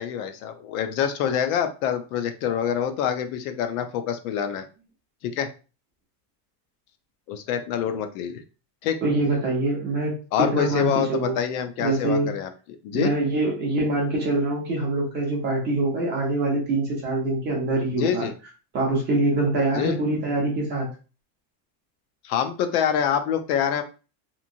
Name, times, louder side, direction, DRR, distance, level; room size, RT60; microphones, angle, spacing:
voice 1, 0.0-4.7 5.2-5.5 7.3-8.4 8.8-9.0 10.3-12.5 12.8-13.1 17.9-18.3 19.7-20.0 22.2-23.8, left 8 dB, 60° left, 7 dB, 0.5 m, -26 dB
voice 2, 9.0-11.4 11.8-12.3 12.9-18.3 18.7-20.9, right 2 dB, 20° right, -1 dB, 0.5 m, -24 dB
2.9 x 2.6 x 2.6 m, 0.34 s
cardioid pair, 175°, 49 cm